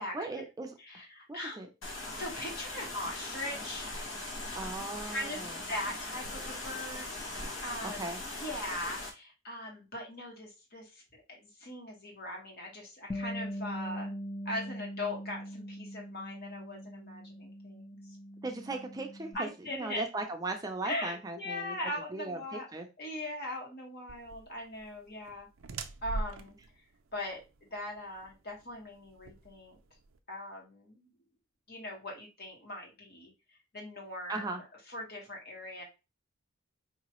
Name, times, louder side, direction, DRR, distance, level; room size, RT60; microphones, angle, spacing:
voice 1, 0.1-0.7 1.3-1.7 4.5-5.5 7.8-8.2 18.4-21.7 22.1-22.9 34.3-34.6, right 2 dB, 20° right, 4 dB, 0.5 m, -38 dB
voice 2, 0.8-1.7 2.1-3.9 5.1-5.4 5.7-7.1 7.6-8.0 8.4-14.1 14.4-18.2 19.3-20.1 20.8-22.6 23.0-25.5 26.0-26.5 27.1-29.8 30.3-31.1 31.7-33.3 33.7-35.8, left 1 dB, 55° left, 0 dB, 1.6 m, -40 dB
sound 1, 1.8-9.1, left 2 dB, 70° left, 1.4 m, -40 dB
Bass guitar, 13.1-19.3, equal, 25° left, 0.6 m, -41 dB
sound 2, 24.1-30.2, right 2 dB, 80° right, 0.5 m, -43 dB
4.8 x 2.9 x 3.0 m, 0.27 s
head